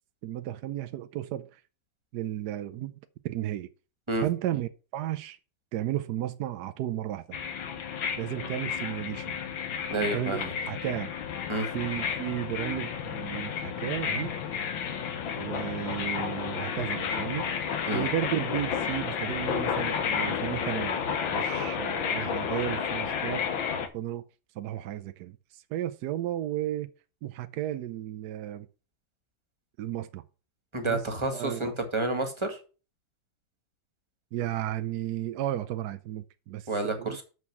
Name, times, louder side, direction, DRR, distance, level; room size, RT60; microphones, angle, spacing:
voice 1, 0.2-1.6 2.1-2.9 3.2-3.7 4.2-5.4 5.7-7.4 8.2-9.4 9.9-11.1 11.7-14.3 15.4-21.0 21.3-23.5 23.9-24.2 24.6-26.9 27.2-28.7 29.8-30.2 30.9-31.0 31.3-31.7 34.3-37.2, right 13 dB, 70° right, 1.0 m, -34 dB
sound 1, 7.3-23.9, left 7 dB, 70° left, 1.9 m, -31 dB
voice 2, 9.9-10.5 11.5-11.7 17.9-18.0 30.7-32.6 36.7-37.2, right 2 dB, 15° right, 1.7 m, -29 dB
7.1 x 6.3 x 6.0 m
omnidirectional pair, 2.2 m